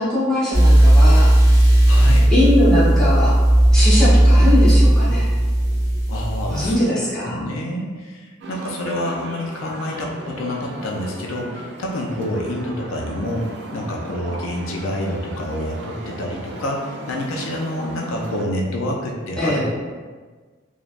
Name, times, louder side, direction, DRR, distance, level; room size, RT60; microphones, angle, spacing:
voice 1, 0.0-1.6 2.3-3.4 3.7-5.3 6.5-7.4 19.4-19.7, left 1 dB, 5° left, -11 dB, 0.8 m, -21 dB
sound 1, 0.5-6.7, right 1 dB, 20° left, 1.5 m, -14 dB
voice 2, 1.9-2.3 6.1-6.8 7.3-19.7, left 1 dB, 85° left, 0 dB, 0.4 m, -27 dB
sound 2, 8.4-18.4, right 1 dB, 55° right, 0.3 m, -36 dB
3.2 x 2.1 x 2.4 m, 1.4 s
head